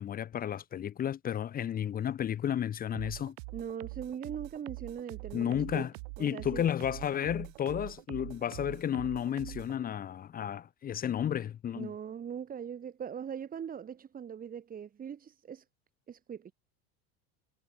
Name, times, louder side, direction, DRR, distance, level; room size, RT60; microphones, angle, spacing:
voice 1, 0.0-3.3 5.3-5.9 6.2-11.9, left 10 dB, 25° left, 1.2 m, -32 dB
sound 1, 2.9-9.8, right 29 dB, 70° right, 7.8 m, -44 dB
voice 2, 3.5-6.7 11.7-15.6 16.1-16.5, right 8 dB, 25° right, 5.8 m, -41 dB
supercardioid pair, 135°, 33 cm